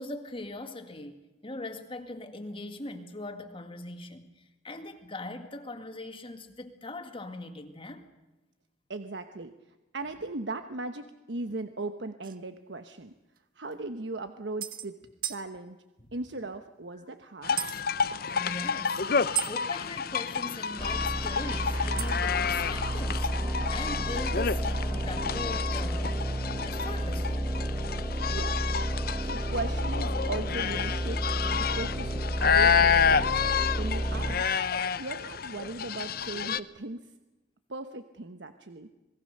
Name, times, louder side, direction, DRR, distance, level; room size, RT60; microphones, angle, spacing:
voice 1, 0.0-8.0 16.0-16.1 18.3-23.3 23.7-26.3 26.7-27.5, left 2 dB, 30° left, 2.0 m, -41 dB
voice 2, 8.9-9.5 9.9-13.1 13.6-15.0 15.3-15.8 16.1-17.6 28.3-28.6 29.3-33.3 33.7-34.5 35.0-37.0 37.7-38.9, right 2 dB, 90° right, 1.1 m, -38 dB
sound 1, 12.2-12.4 13.4-13.5 13.7-13.8 14.6-14.9 15.2-15.4 17.6-17.8 19.3-19.5 22.0-22.3, right 13 dB, 55° right, 1.4 m, -33 dB
sound 2, 17.4-36.6, left 6 dB, 60° left, 0.8 m, -29 dB
sound 3, 20.8-34.3, right 1 dB, 20° right, 4.0 m, -31 dB
27.0 x 20.5 x 6.6 m
head